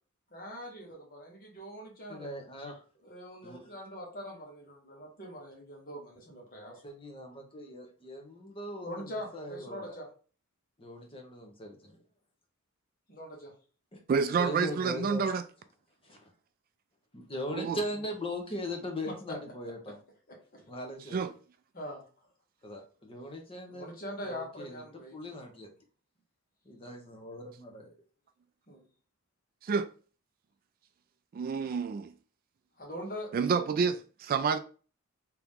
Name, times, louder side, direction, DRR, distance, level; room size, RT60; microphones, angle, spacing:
voice 1, 0.3-2.3 3.0-6.8 8.8-10.1 13.1-13.5 19.1-19.4 19.6-19.9 20.3-20.4 21.7-22.0 23.7-25.4 28.7-28.8 32.8-33.3, equal, 40° left, 1.5 m, -43 dB
voice 2, 2.1-2.8 3.4-3.7 6.8-10.0 10.8-12.0 13.9-14.0 14.4-15.3 16.0-16.3 17.1-20.0 20.7-21.2 22.6-23.9 24.2-25.7 26.6-27.9, left 1 dB, 25° left, 1.0 m, -40 dB
voice 3, 14.1-15.4 17.5-17.8 21.1-21.3 29.6-29.9 31.3-32.1 33.3-34.6, right 5 dB, 40° right, 0.3 m, -28 dB
3.5 x 2.9 x 3.6 m
head